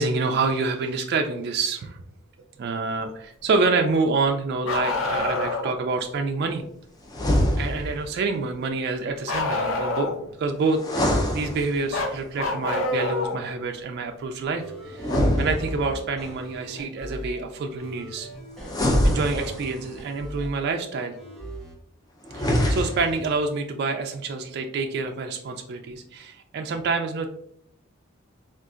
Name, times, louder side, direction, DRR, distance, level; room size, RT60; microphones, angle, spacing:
voice 1, 0.0-2.0 2.6-6.6 7.6-15.1 15.4-18.3 19.0-21.2 22.3-27.3, right 3 dB, 55° right, 4 dB, 0.3 m, -27 dB
Bark, 4.6-5.7 9.3-10.3 11.9-13.4 15.1-15.2 17.1-17.2 18.3-18.4, left 2 dB, 80° left, 0.6 m, -26 dB
sound 1, 7.1-8.1 10.8-12.1 15.0-16.2 18.6-19.9 22.2-23.2, equal, 20° left, 0.4 m, -24 dB
sound 2, 14.6-17.4 17.8-20.6 21.2-21.7, right 1 dB, ahead, 1.2 m, -39 dB
3.7 x 2.4 x 2.3 m, 0.70 s
head